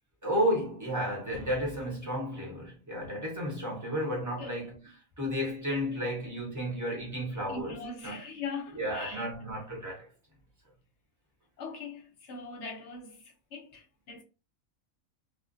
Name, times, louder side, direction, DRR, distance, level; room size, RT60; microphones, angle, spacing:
voice 1, 0.2-4.8 5.2-7.8 8.0-8.2 8.7-10.1, equal, 15° right, 0.8 m, -32 dB
voice 2, 7.5-9.2 11.6-14.2, left 4 dB, 65° left, 0.9 m, -41 dB
2.4 x 2.1 x 2.5 m
omnidirectional pair, 1.4 m